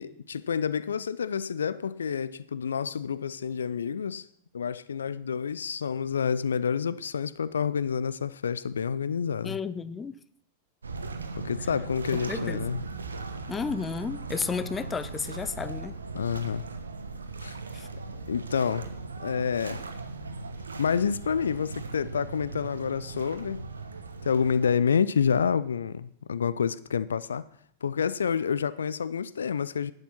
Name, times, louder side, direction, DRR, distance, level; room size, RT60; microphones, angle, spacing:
voice 1, 0.0-4.3 4.5-9.6 11.3-12.8 16.1-16.6 17.4-17.6 18.3-18.9 19.2-19.8 20.8-23.7 24.2-27.4 27.8-29.9, left 7 dB, 70° left, 0.4 m, -28 dB
voice 2, 9.4-10.2 12.3-12.6 13.5-16.0 17.7-17.9, left 5 dB, 15° left, 0.5 m, -32 dB
sound 1, 10.8-24.7, right 3 dB, 75° right, 1.0 m, -38 dB
11.0 x 8.1 x 5.7 m
figure-of-eight pair, 90°, 0 cm